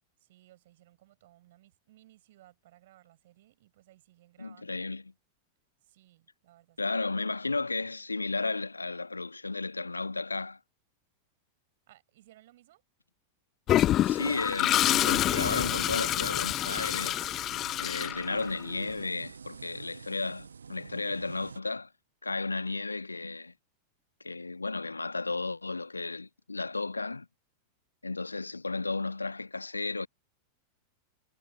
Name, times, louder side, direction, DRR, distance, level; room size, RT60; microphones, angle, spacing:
voice 1, 0.2-4.9 5.8-6.8 11.9-12.8, right 15 dB, 55° right, 7.3 m, -60 dB
voice 2, 4.4-5.1 6.8-10.6 14.0-17.3 17.8-21.9 22.2-23.5 24.2-27.3 28.0-30.1, left 3 dB, 80° left, 1.3 m, -34 dB
Toilet flush, 13.7-18.7, left 13 dB, 30° left, 0.7 m, -27 dB
sound 1, 14.9-21.6, right 6 dB, 75° right, 0.9 m, -48 dB
figure-of-eight pair, 90°, 0 cm